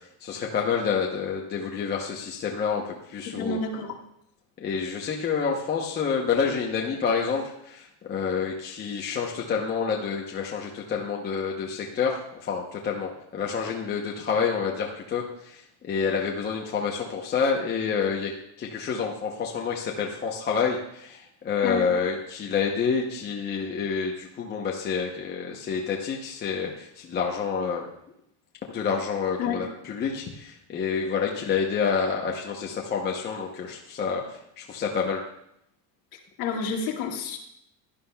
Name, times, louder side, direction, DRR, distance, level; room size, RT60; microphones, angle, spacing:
voice 1, 0.2-3.6 4.6-27.9 28.7-35.2, left 6 dB, 20° left, -1 dB, 0.8 m, -28 dB
voice 2, 3.4-4.0 21.6-21.9 29.4-29.7 36.1-37.4, left 5 dB, 50° left, 0 dB, 2.1 m, -30 dB
16.5 x 11.5 x 2.3 m, 0.76 s
cardioid pair, 165°, 48 cm